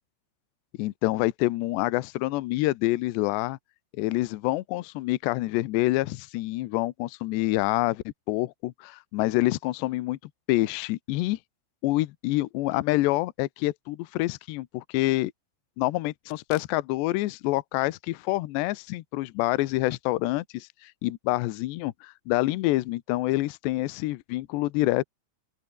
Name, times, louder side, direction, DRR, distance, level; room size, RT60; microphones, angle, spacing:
voice 1, 0.8-3.6 4.0-10.2 10.5-11.4 11.8-15.3 15.8-25.0, left 18 dB, 80° left, 2.6 m, -27 dB
open air
omnidirectional pair, 5.9 m